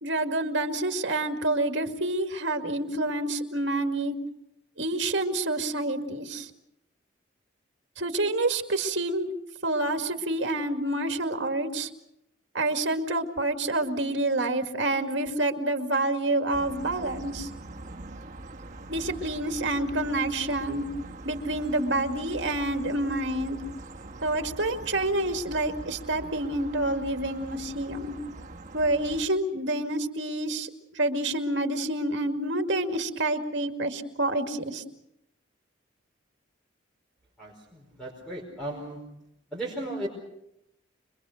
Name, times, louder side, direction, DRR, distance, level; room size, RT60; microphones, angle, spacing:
voice 1, 0.0-4.2 4.8-6.5 8.0-9.3 9.6-11.9 12.5-17.5 18.9-20.8 21.2-23.6 24.2-28.1 28.7-34.8, right 2 dB, 65° right, 5 dB, 2.2 m, -28 dB
sound 1, 16.5-29.3, right 2 dB, 40° right, 1.5 m, -43 dB
voice 2, 37.4-39.1 39.5-40.1, right 1 dB, 5° left, -3 dB, 5.0 m, -36 dB
26.0 x 22.5 x 6.5 m, 0.83 s
head